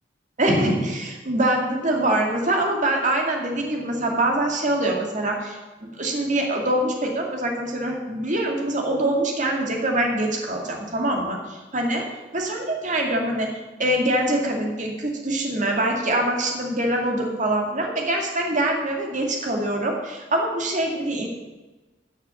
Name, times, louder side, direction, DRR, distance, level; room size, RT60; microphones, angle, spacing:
voice 1, 0.4-12.1 12.3-13.5 13.8-21.3, right 1 dB, 45° right, 1 dB, 2.3 m, -24 dB
11.5 x 6.6 x 7.1 m, 1.2 s
head